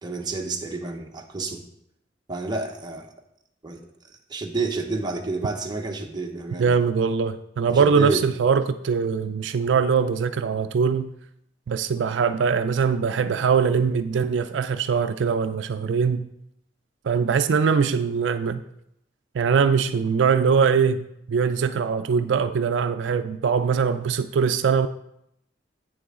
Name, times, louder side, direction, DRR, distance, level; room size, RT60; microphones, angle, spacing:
voice 1, 0.0-1.6 2.3-3.1 3.6-3.8 4.1-6.7 7.7-8.3, right 3 dB, 25° right, 2 dB, 0.9 m, -29 dB
voice 2, 6.6-11.1 11.7-16.3 17.0-18.6 19.3-24.9, right 6 dB, 80° right, 11 dB, 0.4 m, -22 dB
8.6 x 6.9 x 3.6 m, 0.78 s
head